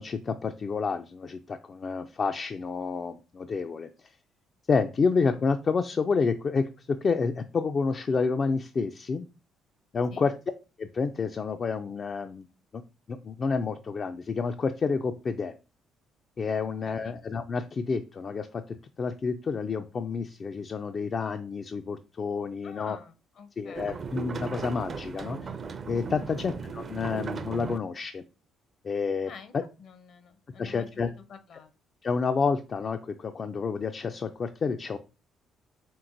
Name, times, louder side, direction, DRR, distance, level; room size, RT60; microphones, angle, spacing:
voice 1, 0.0-4.1 4.7-9.3 9.9-10.3 10.8-12.5 12.7-12.8 13.1-15.5 16.4-18.6 19.0-23.0 23.6-25.5 25.9-28.2 28.8-29.6 30.6-31.1 32.0-35.0, left 5 dB, 45° left, 7 dB, 0.3 m, -29 dB
voice 2, 16.8-17.2 22.6-24.1 26.2-26.5 29.2-29.5 29.8-31.7, left 6 dB, 60° left, 9 dB, 0.7 m, -49 dB
sound 1, 23.7-27.8, right 5 dB, 45° right, 0.5 m, -37 dB
4.4 x 3.5 x 2.6 m, 0.32 s
hypercardioid pair, 50°, 0 cm